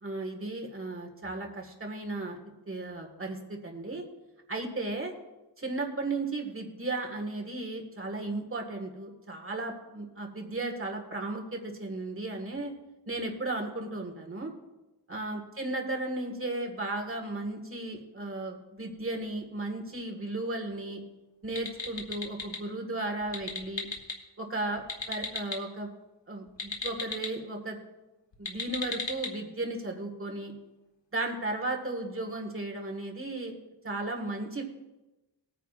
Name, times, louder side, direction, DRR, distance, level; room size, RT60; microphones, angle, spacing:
voice 1, 0.0-2.4 2.7-4.0 4.5-5.1 5.6-12.7 13.1-14.5 15.1-21.0 21.4-23.9 24.4-25.9 26.3-27.8 28.4-30.5 31.1-33.6 33.8-34.6, right 2 dB, 30° right, 2 dB, 1.8 m, -35 dB
sound 1, 21.4-22.6 23.2-24.2 24.8-25.6 26.5-27.3 28.3-29.3, left 4 dB, 80° left, 1.5 m, -36 dB
18.5 x 9.3 x 2.5 m, 1.0 s
wide cardioid pair, 115°, 44 cm